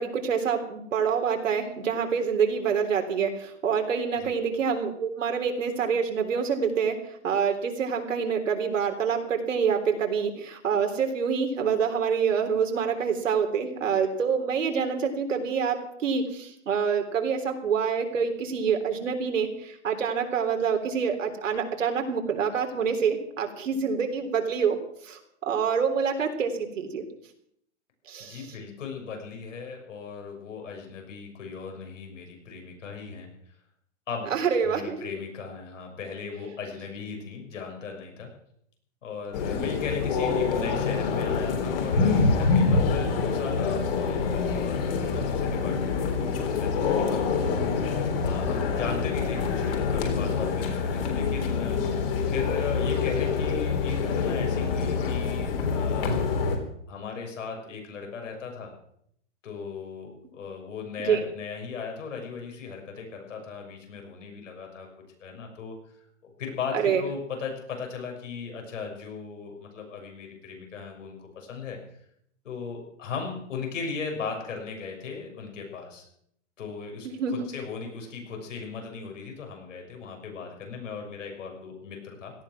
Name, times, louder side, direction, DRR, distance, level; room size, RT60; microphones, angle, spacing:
voice 1, 0.0-7.0 7.2-24.8 25.1-27.0 28.1-28.4 34.3-35.0 61.0-61.2 66.7-67.0 77.0-77.3, right 6 dB, 90° right, 4 dB, 3.7 m, -26 dB
voice 2, 28.2-33.3 34.1-34.3 34.6-38.3 39.0-47.6 48.2-56.1 56.9-58.7 59.4-64.9 65.2-65.8 66.4-71.8 72.4-76.0 76.6-82.3, left 5 dB, 80° left, 2 dB, 6.3 m, -37 dB
sound 1, 39.3-56.6, left 5 dB, 50° left, 3.6 m, -26 dB
17.5 x 13.0 x 6.2 m, 0.71 s
hypercardioid pair, 170°, 37 cm